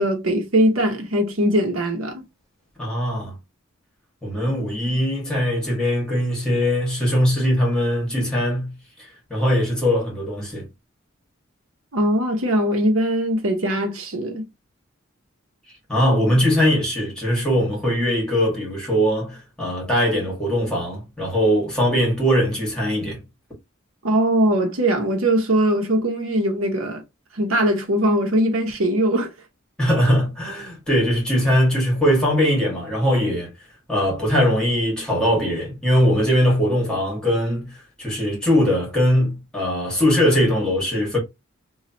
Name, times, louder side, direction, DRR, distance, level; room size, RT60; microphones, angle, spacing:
voice 1, 0.0-2.2 11.9-14.4 24.0-27.0 27.3-29.3, right 1 dB, 80° right, 1.0 m, -21 dB
voice 2, 2.8-3.3 4.2-8.7 9.3-10.7 15.9-23.2 29.8-33.5 33.9-37.7 38.0-41.2, equal, 5° left, 1.5 m, -21 dB
3.1 x 2.4 x 2.7 m
head